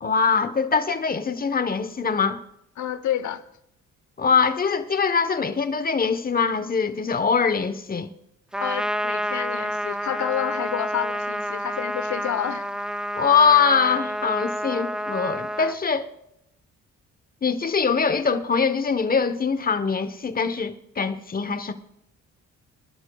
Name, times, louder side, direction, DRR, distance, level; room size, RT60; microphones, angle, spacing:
voice 1, 0.0-2.4 4.2-8.1 13.1-16.1 17.4-21.7, left 5 dB, 30° left, 1.1 m, -23 dB
voice 2, 2.8-3.4 8.6-12.7, left 11 dB, 75° left, 1.0 m, -29 dB
Trumpet, 8.5-15.8, equal, 5° right, 0.4 m, -29 dB
25.5 x 11.5 x 2.4 m
cardioid pair, 90°, 30 cm